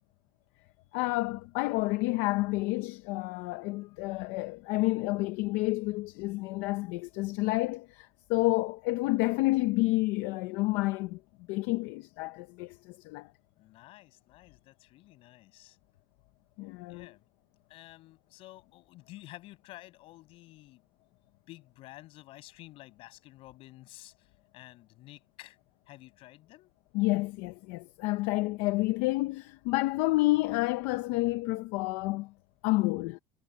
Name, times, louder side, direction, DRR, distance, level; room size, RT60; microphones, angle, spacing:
voice 1, 0.9-11.2 11.5-13.3 16.6-17.1 26.9-32.3 32.6-33.2, left 21 dB, 80° left, 0.8 m, -29 dB
voice 2, 13.6-15.8 16.9-17.2 17.7-20.8 21.5-25.6 25.9-26.7, left 17 dB, 60° left, 7.3 m, -51 dB
cardioid pair, 145°, 11 cm